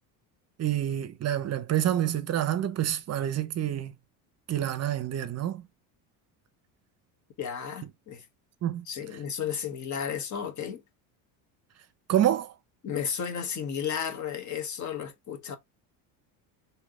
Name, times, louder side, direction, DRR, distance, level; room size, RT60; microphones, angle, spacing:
voice 1, 0.6-3.9 4.5-5.6 8.6-8.8 12.1-12.5, right 11 dB, 35° right, 0.7 m, -27 dB
voice 2, 7.4-8.3 8.9-10.8 12.8-15.6, left 8 dB, 40° left, 1.1 m, -33 dB
3.2 x 2.9 x 3.7 m
supercardioid pair, 105°, 43 cm